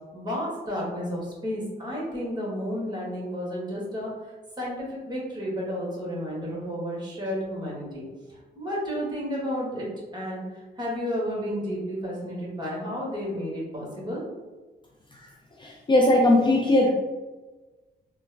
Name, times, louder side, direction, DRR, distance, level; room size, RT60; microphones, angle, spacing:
voice 1, 0.1-9.9 10.1-10.4 10.8-14.2, equal, 20° right, -5 dB, 1.5 m, -32 dB
voice 2, 15.6-16.9, left 1 dB, 25° left, -2 dB, 0.4 m, -19 dB
3.3 x 2.1 x 3.4 m, 1.2 s
cardioid pair, 90°, 19 cm